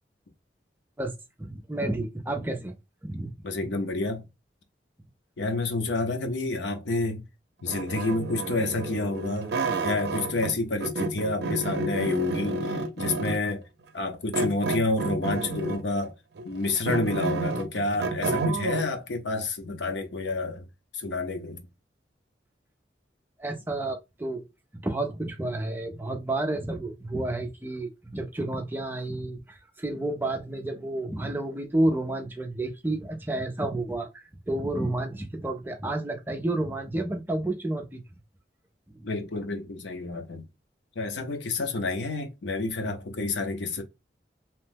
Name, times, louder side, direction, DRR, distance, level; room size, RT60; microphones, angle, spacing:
voice 1, 1.0-2.8 3.0-3.3 23.4-24.5 24.7-38.0, right 2 dB, 10° right, 0.4 m, -30 dB
voice 2, 3.4-4.3 5.4-7.2 7.6-9.5 9.8-13.6 13.9-16.1 16.4-20.7 20.9-21.6 39.0-40.5 41.0-43.8, left 2 dB, 85° left, 0.7 m, -29 dB
sound 1, 7.7-10.5 10.8-13.5 14.3-15.9 16.4-18.9, right 2 dB, 70° right, 0.5 m, -30 dB
2.9 x 2.1 x 3.3 m
head